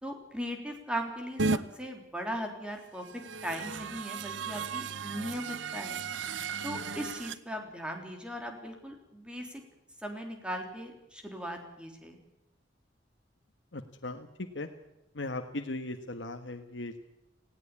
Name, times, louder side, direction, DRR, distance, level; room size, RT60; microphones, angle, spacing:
voice 1, 0.0-3.0 3.4-6.0 6.6-9.6 10.0-12.2, equal, 5° right, 3 dB, 3.5 m, -38 dB
sound 1, 1.4-1.6 3.0-7.4, right 4 dB, 85° right, 0.9 m, -35 dB
voice 2, 13.7-14.3 14.5-14.7 15.1-17.0, left 2 dB, 80° left, 5 dB, 1.4 m, -38 dB
19.0 x 17.0 x 8.5 m, 0.93 s
head